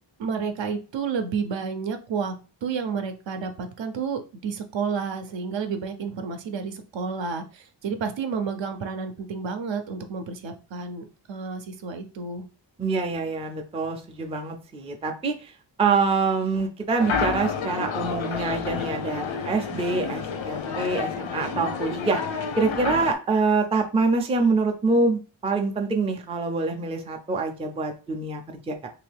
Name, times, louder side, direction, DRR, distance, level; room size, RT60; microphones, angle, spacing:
voice 1, 0.2-2.4 2.6-12.4, right 5 dB, 75° right, 7 dB, 0.6 m, -30 dB
voice 2, 12.8-15.5 15.8-22.2 22.6-28.9, right 3 dB, 15° right, 4 dB, 0.3 m, -25 dB
sound 1, 17.0-23.1, left 5 dB, 80° left, 0.6 m, -30 dB
3.0 x 2.6 x 3.3 m, 0.34 s
wide cardioid pair, 170°, 46 cm